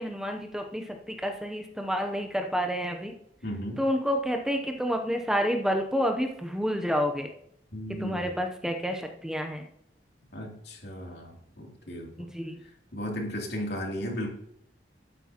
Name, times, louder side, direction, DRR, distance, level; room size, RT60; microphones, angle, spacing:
voice 1, 0.0-3.1 3.8-7.3 8.0-9.7 12.2-12.6, equal, 5° right, 4 dB, 0.7 m, -29 dB
voice 2, 3.4-3.8 7.7-8.4 10.3-12.2 12.9-14.3, equal, 65° left, -1 dB, 2.9 m, -35 dB
12.0 x 9.8 x 2.9 m, 0.73 s
head